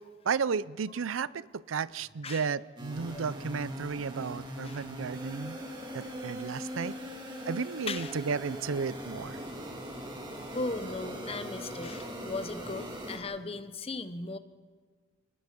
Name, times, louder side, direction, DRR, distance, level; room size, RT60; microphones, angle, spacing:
voice 1, 0.2-5.6 5.9-7.0 7.5-9.4, right 5 dB, 90° right, 19 dB, 0.5 m, -33 dB
voice 2, 2.2-2.5 3.1-3.2 4.6-4.9 5.1-5.3 5.7-5.9 6.3-6.4 7.1-7.4 7.9-8.2 10.1-10.2 10.5-14.4, left 3 dB, 30° left, 11 dB, 1.0 m, -38 dB
sound 1, 2.8-13.2, equal, 25° right, 3.2 m, -40 dB
30.0 x 20.0 x 5.3 m, 1.5 s
head